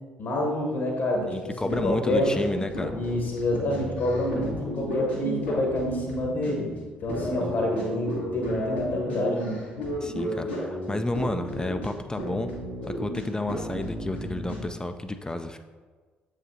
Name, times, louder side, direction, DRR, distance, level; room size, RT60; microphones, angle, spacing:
voice 1, 0.2-2.3 2.9-6.7 7.0-9.6, left 1 dB, 55° left, -1 dB, 1.2 m, -28 dB
sound 1, 1.1-14.7, equal, 90° left, 1.5 m, -33 dB
voice 2, 1.3-2.9 7.4-7.6 10.0-12.5 12.8-15.6, left 2 dB, 15° left, 7 dB, 0.4 m, -31 dB
7.1 x 5.0 x 2.7 m, 1.4 s
figure-of-eight pair, 50°, 5 cm